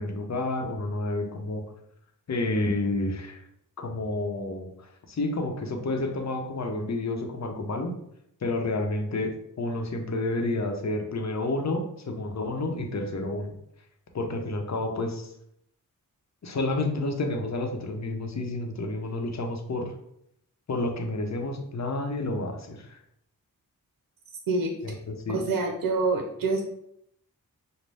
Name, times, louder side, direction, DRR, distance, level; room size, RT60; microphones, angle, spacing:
voice 1, 0.0-1.6 2.3-3.4 3.8-7.9 8.4-13.5 14.1-15.3 16.4-19.9 20.7-23.0 24.8-25.4, left 2 dB, 50° left, 3 dB, 0.8 m, -30 dB
voice 2, 25.3-26.6, right 3 dB, 80° right, 3 dB, 0.7 m, -26 dB
5.3 x 2.2 x 3.3 m, 0.75 s
cardioid pair, 60°, 34 cm